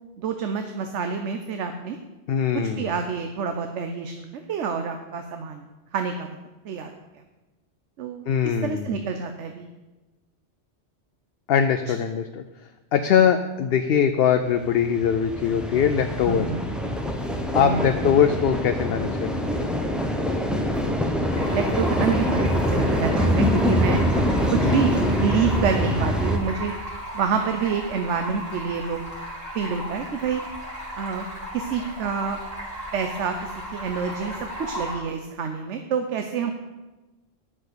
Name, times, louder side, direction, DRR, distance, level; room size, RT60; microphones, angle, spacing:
voice 1, 0.2-2.0 2.5-5.6 5.9-6.4 6.6-6.9 8.0-9.7 16.3-16.6 17.6-18.0 20.7-21.0 21.4-24.0 24.5-26.7 27.1-29.0 29.5-30.4 31.0-31.3 31.5-32.4 32.9-36.5, right 6 dB, 85° right, 6 dB, 1.0 m, -27 dB
voice 2, 2.3-2.9 8.3-9.0 11.5-12.4 12.9-16.5 17.5-19.6 24.6-24.8, left 8 dB, 65° left, 7 dB, 0.7 m, -22 dB
sound 1, 14.5-26.4, equal, ahead, 0.8 m, -24 dB
Stream, 21.3-34.9, equal, 60° right, 3.0 m, -36 dB
10.5 x 6.1 x 6.7 m, 1.1 s
omnidirectional pair, 1.2 m